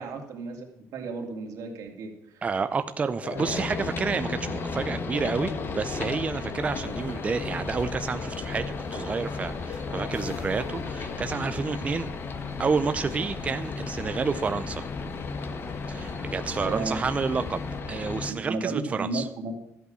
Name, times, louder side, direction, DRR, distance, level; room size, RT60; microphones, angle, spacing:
voice 1, 0.0-2.4 16.5-17.0 18.3-19.5, right 3 dB, 90° right, 3 dB, 2.6 m, -33 dB
voice 2, 2.4-8.7 8.9-12.1 12.6-14.8 15.9-17.6 17.9-19.3, right 5 dB, 25° right, 10 dB, 0.5 m, -29 dB
sound 1, 3.2-11.2, left 5 dB, 85° left, 1.8 m, -41 dB
sound 2, 3.4-18.3, left 4 dB, 45° left, 1.3 m, -34 dB
sound 3, 6.6-17.8, left 2 dB, 10° left, 1.3 m, -45 dB
13.0 x 8.3 x 6.3 m, 0.80 s
cardioid pair, 165°, 6 cm